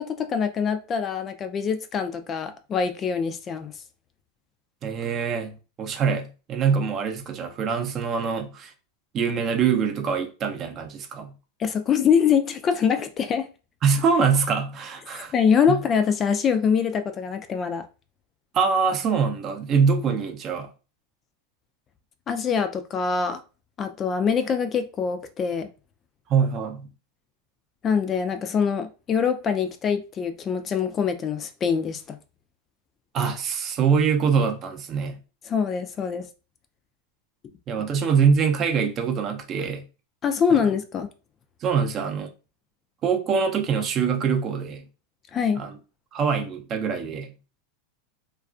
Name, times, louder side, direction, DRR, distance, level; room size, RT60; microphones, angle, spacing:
voice 1, 0.0-3.7 11.6-13.5 15.3-17.8 22.3-23.4 23.8-25.7 27.8-32.2 35.4-36.3 40.2-41.1 45.3-45.6, left 6 dB, 30° left, 0.3 m, -24 dB
voice 2, 4.8-8.7 9.1-11.3 13.8-15.3 15.7-15.8 18.5-20.7 26.3-26.8 33.1-35.2 37.7-39.8 40.5-40.6 41.6-42.3 43.0-44.8 45.6-45.8 46.1-47.3, right 6 dB, 35° right, 0.5 m, -24 dB
2.3 x 2.2 x 2.4 m
hypercardioid pair, 115°, 0 cm